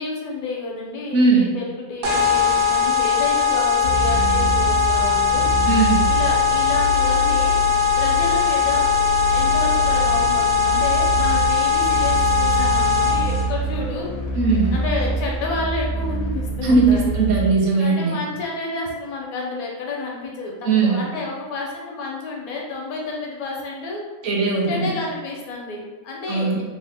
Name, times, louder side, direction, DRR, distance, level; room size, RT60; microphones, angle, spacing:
voice 1, 0.0-5.5 6.0-7.6 8.0-8.9 9.3-14.2 14.7-17.1 17.8-20.5 20.8-24.0 24.7-26.6, left 3 dB, 75° left, -1 dB, 1.1 m, -30 dB
voice 2, 1.1-1.5 5.7-6.1 14.4-14.8 16.6-18.2 20.6-21.1 24.2-24.9 26.3-26.6, right 3 dB, 65° right, -2 dB, 0.8 m, -19 dB
sound 1, 2.0-13.4, left 6 dB, 85° right, 1.2 m, -20 dB
sound 2, 3.8-17.5, right 2 dB, 90° left, 1.1 m, -26 dB
3.0 x 2.0 x 3.3 m, 1.2 s
omnidirectional pair, 1.6 m